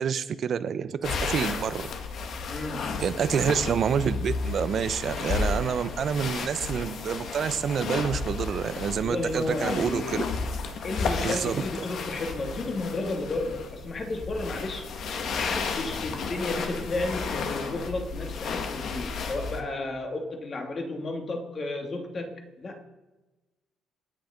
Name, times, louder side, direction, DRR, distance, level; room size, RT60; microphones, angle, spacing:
voice 1, 0.0-1.9 3.0-10.2 11.2-11.6, right 7 dB, 45° right, 13 dB, 0.9 m, -28 dB
sound 1, 1.0-19.6, left 4 dB, 55° left, 1.9 m, -33 dB
voice 2, 2.5-3.0 9.0-10.3 10.8-14.9 15.3-22.8, left 2 dB, 30° left, 4 dB, 2.6 m, -32 dB
26.5 x 9.9 x 5.3 m, 1.1 s
cardioid pair, 155°, 0 cm